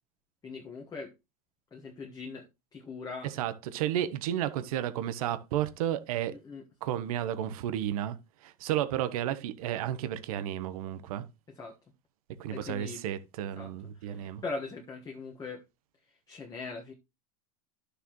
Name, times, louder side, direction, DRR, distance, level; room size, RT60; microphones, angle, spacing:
voice 1, 0.4-1.1 1.7-3.3 6.3-6.6 11.5-11.7 12.5-13.0 13.6-15.6 16.1-16.9, left 4 dB, 20° left, 1.5 m, -41 dB
voice 2, 3.2-6.3 6.8-8.2 8.4-11.3 12.4-14.4, right 11 dB, 70° right, 1.1 m, -32 dB
11.0 x 6.7 x 3.1 m
supercardioid pair, 135°, 19 cm